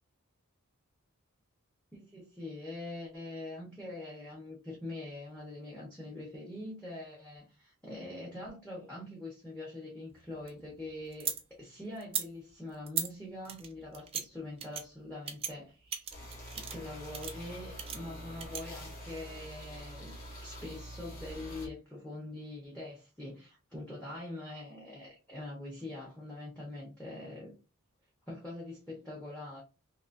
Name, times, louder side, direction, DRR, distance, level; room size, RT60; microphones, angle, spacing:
voice 1, 1.9-11.3 11.6-16.0 16.5-20.2 20.4-27.5 28.3-29.6, left 2 dB, 5° left, 1.0 m, -44 dB
sound 1, 10.1-11.4 12.0-12.3 12.9-13.1 13.4-14.2 14.6-14.8 15.3-15.5 15.9-16.9 17.1-17.3 17.8-18.6, right 8 dB, 25° right, 0.4 m, -37 dB
sound 2, 16.1-21.7, equal, 40° left, 1.5 m, -46 dB
3.0 x 2.9 x 2.5 m
head